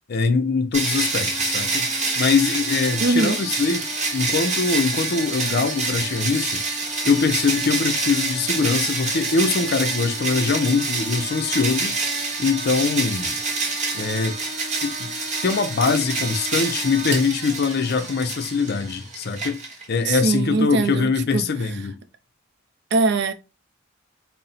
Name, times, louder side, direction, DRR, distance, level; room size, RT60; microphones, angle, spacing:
voice 1, 0.1-3.9 4.1-6.6 7.0-12.0 12.4-13.3 13.9-14.4 14.8-15.2 15.4-19.6 19.9-22.0, left 4 dB, 50° left, 0.5 m, -23 dB
sound 1, 0.7-20.1, right 3 dB, 35° right, 0.9 m, -27 dB
voice 2, 3.0-3.4 20.1-21.5 22.9-23.3, right 3 dB, 55° right, 0.4 m, -21 dB
4.0 x 2.1 x 4.0 m
head